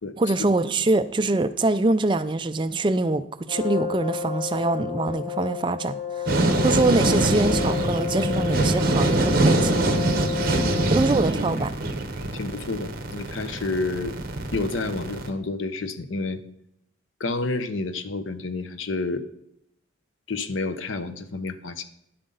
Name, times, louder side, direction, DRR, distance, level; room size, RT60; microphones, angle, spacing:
voice 1, 0.2-9.8 10.9-11.7, right 2 dB, 25° right, 0.4 m, -24 dB
Brass instrument, 3.5-11.3, left 7 dB, 25° left, 2.0 m, -31 dB
sound 1, 6.3-15.3, right 2 dB, 50° right, 1.1 m, -24 dB
voice 2, 10.6-10.9 12.3-14.2 14.5-16.4 17.2-19.2 20.3-21.8, left 3 dB, 85° left, 0.8 m, -30 dB
10.5 x 7.7 x 3.9 m
head